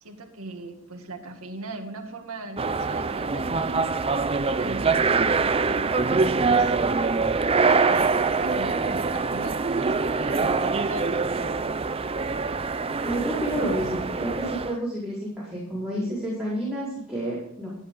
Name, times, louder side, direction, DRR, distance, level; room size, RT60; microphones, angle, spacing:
voice 1, 0.0-3.8 4.6-6.2 6.5-6.9 7.9-11.8, right 2 dB, 90° right, 3 dB, 2.1 m, -39 dB
sound 1, 2.6-14.8, right 4 dB, 25° right, 0.5 m, -24 dB
voice 2, 13.0-17.7, right 1 dB, 5° right, -9 dB, 4.6 m, -29 dB
13.0 x 10.5 x 3.9 m, 0.75 s
head